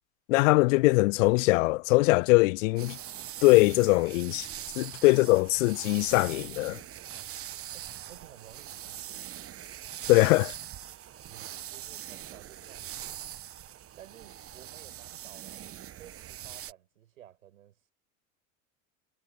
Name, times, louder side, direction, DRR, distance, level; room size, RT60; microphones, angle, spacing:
voice 1, 0.3-3.0 3.4-4.5 4.8-6.8 10.1-10.5, left 23 dB, 70° left, 0.5 m, -22 dB
sound 1, 2.8-16.7, right 11 dB, 35° right, 1.2 m, -42 dB
voice 2, 7.7-9.3 11.3-13.2 14.0-17.9, right 11 dB, 85° right, 5.9 m, -54 dB
hypercardioid pair, 90°, 40 cm